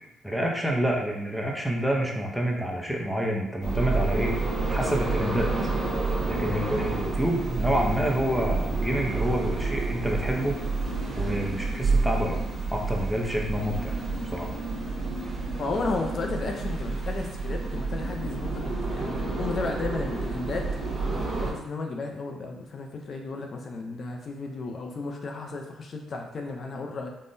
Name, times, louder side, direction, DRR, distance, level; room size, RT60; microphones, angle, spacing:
voice 1, 0.2-5.5 6.3-10.6 11.2-12.4 12.7-14.0 14.3-14.5, equal, 5° right, -1 dB, 0.6 m, -28 dB
sound 1, 3.6-21.5, right 3 dB, 40° right, 0.9 m, -29 dB
voice 2, 15.6-20.7 21.4-27.1, left 3 dB, 50° left, 2 dB, 0.4 m, -33 dB
3.6 x 2.0 x 2.6 m, 0.92 s
cardioid pair, 75°, 0 cm